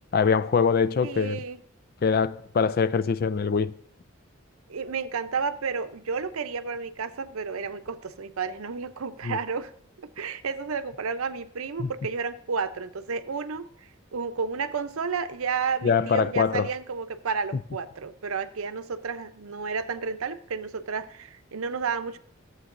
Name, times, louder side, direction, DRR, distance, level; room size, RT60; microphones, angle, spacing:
voice 1, 0.1-1.4 2.0-3.7 9.2-9.4 11.8-11.9 15.8-16.7, left 5 dB, 45° left, 0.3 m, -23 dB
voice 2, 1.0-1.6 4.7-9.7 10.0-22.2, right 5 dB, 85° right, 0.6 m, -32 dB
14.5 x 8.0 x 2.6 m
head